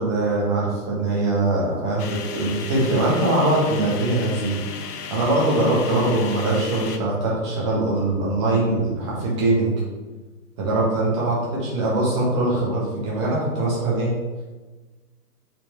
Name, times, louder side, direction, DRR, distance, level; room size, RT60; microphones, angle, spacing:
voice 1, 0.0-4.6 5.1-9.7 10.6-14.1, right 2 dB, 20° right, -6 dB, 1.3 m, -22 dB
sound 1, 2.0-7.0, left 7 dB, 70° left, 0.8 m, -35 dB
6.0 x 4.6 x 3.6 m, 1.3 s
hypercardioid pair, 170°, 48 cm